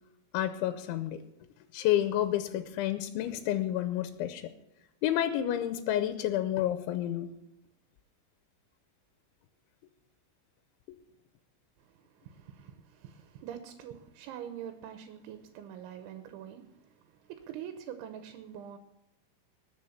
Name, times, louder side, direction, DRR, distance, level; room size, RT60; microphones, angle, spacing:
voice 1, 0.3-1.2 1.7-4.5 5.0-7.3, left 12 dB, 85° left, 9 dB, 3.1 m, -30 dB
voice 2, 11.8-18.8, right 9 dB, 85° right, 8 dB, 3.4 m, -45 dB
20.5 x 7.1 x 5.8 m, 0.92 s
omnidirectional pair, 5.2 m